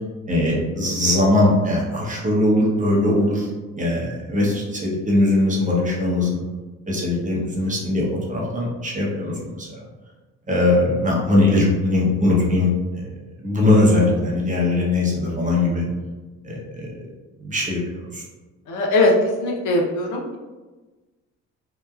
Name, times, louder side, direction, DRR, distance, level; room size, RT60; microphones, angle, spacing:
voice 1, 0.3-3.5 3.8-6.4 6.9-9.7 10.5-13.1 13.4-15.9 16.4-16.9 17.4-17.8 18.1-18.2, left 2 dB, 25° right, -3 dB, 0.8 m, -20 dB
voice 2, 18.7-19.1 19.4-20.2, left 2 dB, 85° left, -2 dB, 0.6 m, -20 dB
2.8 x 2.1 x 2.3 m, 1.2 s
cardioid pair, 90°, 30 cm